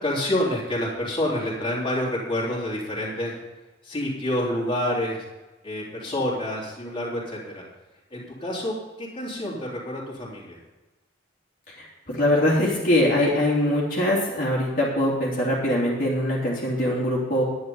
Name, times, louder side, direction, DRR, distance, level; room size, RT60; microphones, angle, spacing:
voice 1, 0.0-3.4 3.8-5.2 5.6-7.6 8.1-10.6, left 1 dB, 25° left, -5 dB, 3.4 m, -28 dB
voice 2, 12.1-17.4, left 1 dB, 45° left, -5 dB, 3.0 m, -22 dB
11.0 x 10.0 x 5.4 m, 1.1 s
head